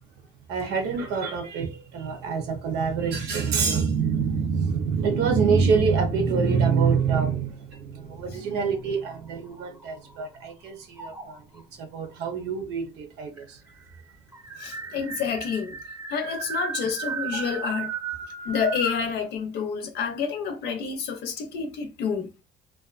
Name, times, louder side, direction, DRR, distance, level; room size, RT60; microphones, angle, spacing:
voice 1, 0.5-11.4 11.8-13.6 14.9-15.0, right 5 dB, 90° right, 0.7 m, -25 dB
sound 1, 9.0-10.4 11.0-11.6 12.6-12.7 13.0-13.1 13.4-19.1, right 5 dB, 15° right, 0.5 m, -35 dB
voice 2, 14.6-15.7 16.1-17.9 18.4-22.4, left 6 dB, 75° left, 0.6 m, -29 dB
2.4 x 2.2 x 2.4 m
cardioid pair, 110°, 17 cm